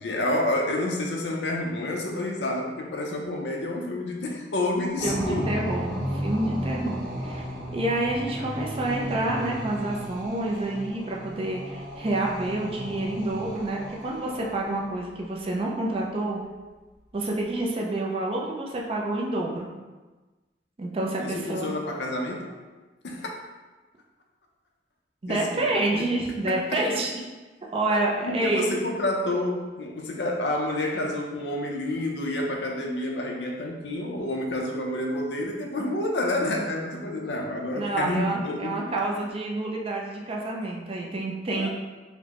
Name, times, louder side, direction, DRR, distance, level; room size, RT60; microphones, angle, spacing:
voice 1, 0.0-5.5 21.2-22.6 23.0-23.3 25.2-25.7 25.9-26.0 26.5-26.6 27.9-39.0 41.5-41.7, left 1 dB, 70° left, 1 dB, 0.5 m, -29 dB
voice 2, 5.0-7.5 7.7-16.4 17.1-19.8 20.8-21.7 25.2-27.1 27.7-28.7 37.8-41.7, right 2 dB, 30° right, -1 dB, 0.4 m, -28 dB
sound 1, 5.0-14.9, equal, 50° right, 1.5 m, -34 dB
4.3 x 2.1 x 2.9 m, 1.2 s
head